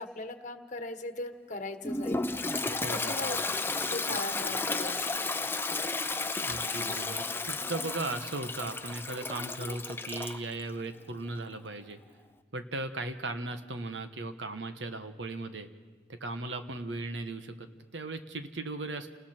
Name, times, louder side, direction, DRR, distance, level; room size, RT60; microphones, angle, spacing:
voice 1, 0.0-3.4 3.9-5.2, left 2 dB, 45° left, 8 dB, 1.3 m, -39 dB
Toilet flush, 1.8-10.4, left 3 dB, 10° left, 0.6 m, -33 dB
voice 2, 2.8-3.2 6.4-12.0 12.5-15.7 16.1-19.1, right 2 dB, 80° right, 8 dB, 1.3 m, -37 dB
29.5 x 19.5 x 4.5 m, 1.4 s
head